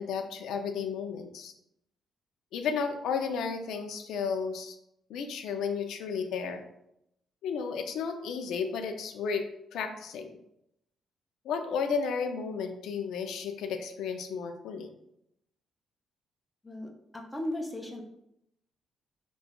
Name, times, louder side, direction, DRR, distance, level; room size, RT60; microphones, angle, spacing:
voice 1, 0.0-1.5 2.5-4.8 5.1-6.6 7.4-9.4 9.7-10.4 11.4-14.9, left 6 dB, 80° left, 6 dB, 0.4 m, -33 dB
voice 2, 16.6-18.0, left 1 dB, 5° left, 0 dB, 0.5 m, -36 dB
5.0 x 2.3 x 2.2 m, 0.78 s
cardioid pair, 160°, 0 cm